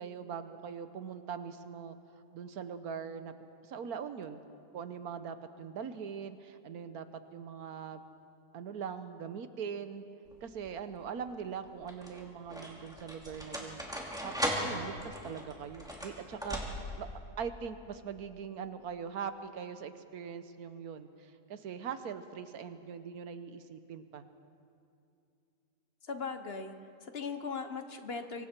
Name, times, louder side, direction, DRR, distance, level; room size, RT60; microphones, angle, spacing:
voice 1, 0.0-2.0 2.3-3.3 3.6-7.1 7.3-8.0 8.5-10.1 10.4-13.8 14.2-17.1 17.4-24.3, right 7 dB, 85° right, 10 dB, 1.4 m, -41 dB
sound 1, 10.3-10.8 11.6-17.1, equal, ahead, 2.4 m, -38 dB
voice 2, 26.1-26.7 27.0-28.5, left 5 dB, 45° left, 8 dB, 1.2 m, -38 dB
25.0 x 24.0 x 4.5 m, 2.6 s
omnidirectional pair, 1.6 m